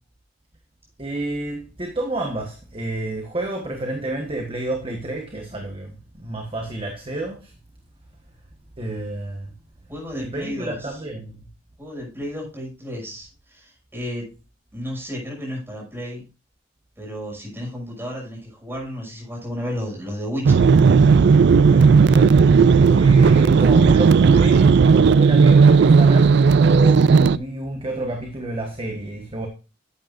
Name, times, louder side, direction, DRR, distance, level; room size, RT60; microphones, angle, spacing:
voice 1, 1.0-7.5 8.8-9.5 10.1-11.4 21.6-22.4 22.8-29.5, right 2 dB, 30° right, 3 dB, 1.4 m, -30 dB
voice 2, 9.9-11.0 11.8-14.3 14.7-16.2 17.0-20.7, equal, 15° right, -2 dB, 6.3 m, -32 dB
sound 1, 20.4-27.4, right 5 dB, 65° right, 0.4 m, -13 dB
11.0 x 8.8 x 2.6 m, 0.31 s
head